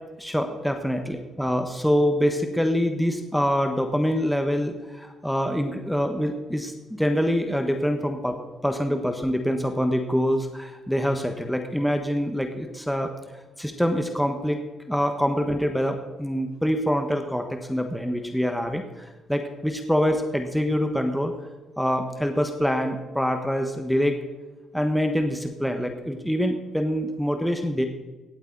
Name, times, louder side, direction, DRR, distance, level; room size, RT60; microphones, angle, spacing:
voice 1, 0.2-8.4 8.6-13.1 13.6-14.6 14.9-18.8 19.3-21.3 21.8-24.2 24.7-27.9, equal, ahead, 5 dB, 1.3 m, -25 dB
17.5 x 8.1 x 4.1 m, 1.2 s
cardioid pair, 90°, 0 cm